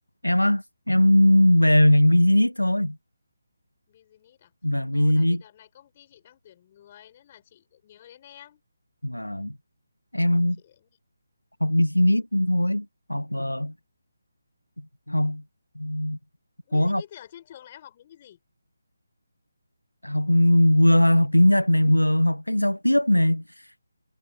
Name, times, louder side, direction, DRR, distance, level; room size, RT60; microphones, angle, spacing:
voice 1, 0.2-3.0 4.6-5.4 9.0-9.5 10.1-10.6 11.6-13.7 15.1-15.4 15.8-16.2 16.7-17.0 20.0-23.4, left 1 dB, 90° left, 0.7 m, -20 dB
voice 2, 3.9-4.5 4.9-8.6 10.6-11.0 16.6-18.4, left 11 dB, 30° left, 5.5 m, -49 dB
figure-of-eight pair, 150°, 0 cm